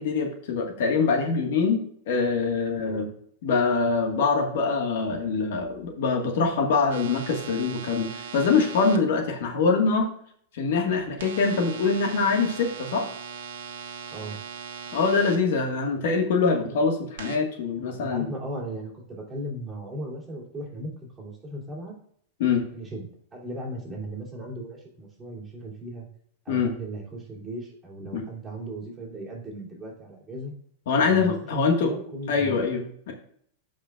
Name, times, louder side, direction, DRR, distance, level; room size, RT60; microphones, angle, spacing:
voice 1, 0.0-3.1 3.4-10.1 10.5-13.1 14.9-18.3 22.4-22.6 26.5-26.7 28.1-28.2 30.9-31.9 32.3-33.1, left 4 dB, 65° left, 3 dB, 1.5 m, -24 dB
sound 1, 6.9-9.0 11.2-15.4 17.2-17.4, right 7 dB, 80° right, 1.3 m, -39 dB
voice 2, 17.9-21.9 22.7-23.1 23.3-26.1 26.4-30.5 31.1-32.6, right 1 dB, 10° right, -5 dB, 2.9 m, -37 dB
14.0 x 5.2 x 2.4 m, 0.65 s
supercardioid pair, 155°, 0 cm